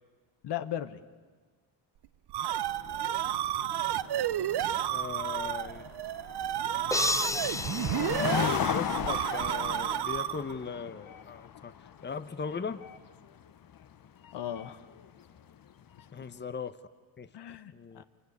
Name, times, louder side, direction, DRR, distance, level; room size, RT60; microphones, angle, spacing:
voice 1, 0.4-1.0 14.3-14.9 17.3-18.0, left 11 dB, 65° left, 11 dB, 1.4 m, -37 dB
sound 1, 2.0-10.6, right 11 dB, 60° right, 1.0 m, -31 dB
sound 2, 2.7-16.2, left 9 dB, 50° left, 1.1 m, -37 dB
voice 2, 4.9-5.9 8.5-12.8 16.1-16.8 17.2-17.3 17.7-18.0, left 5 dB, 25° left, 12 dB, 1.1 m, -38 dB
sound 3, 6.9-9.2, left 2 dB, 5° left, 0.9 m, -32 dB
26.0 x 23.5 x 9.8 m, 1.4 s
cardioid pair, 75°, 44 cm